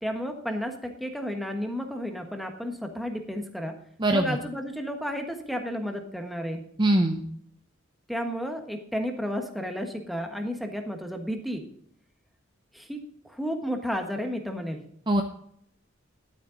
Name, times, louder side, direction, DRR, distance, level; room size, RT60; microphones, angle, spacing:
voice 1, 0.0-3.8 4.1-6.7 8.1-11.6 12.7-14.8, equal, ahead, 3 dB, 1.3 m, -32 dB
voice 2, 4.0-4.4 6.8-7.2 15.1-15.2, right 1 dB, 25° right, 5 dB, 0.7 m, -22 dB
12.0 x 8.7 x 3.9 m, 0.67 s
head